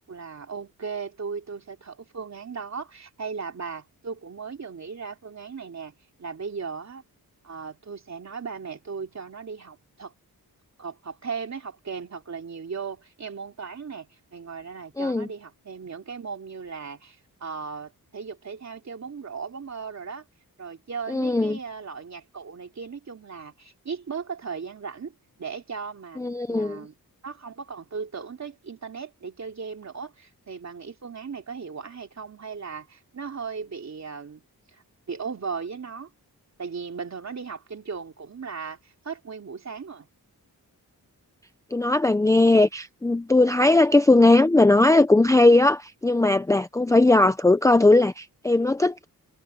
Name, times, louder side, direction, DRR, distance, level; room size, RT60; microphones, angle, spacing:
voice 1, 0.1-5.9 6.2-7.0 7.4-10.1 10.8-20.3 20.6-27.0 27.2-34.4 34.7-36.1 36.6-40.1, right 5 dB, 45° right, 3.2 m, -37 dB
voice 2, 15.0-15.3 21.1-21.6 26.2-26.8 41.7-49.0, left 2 dB, 10° left, 0.5 m, -19 dB
wide cardioid pair, 160°, 37 cm